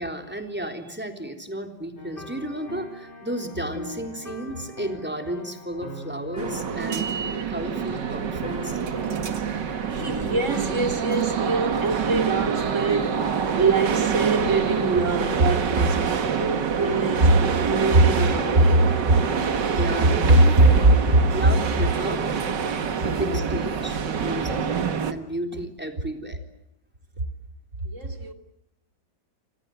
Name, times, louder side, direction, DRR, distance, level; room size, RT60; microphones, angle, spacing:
voice 1, 0.0-7.1 7.5-8.8 19.7-20.7 21.3-22.3 23.0-24.7 25.1-26.4, right 1 dB, 5° right, 3.6 m, -33 dB
sound 1, 2.0-19.7, left 1 dB, 30° left, 2.9 m, -40 dB
sound 2, 6.4-25.1, right 6 dB, 70° right, 2.2 m, -26 dB
voice 2, 9.7-19.2 20.3-20.9 27.8-28.3, right 2 dB, 40° right, 3.0 m, -21 dB
29.0 x 26.0 x 7.9 m
omnidirectional pair, 2.0 m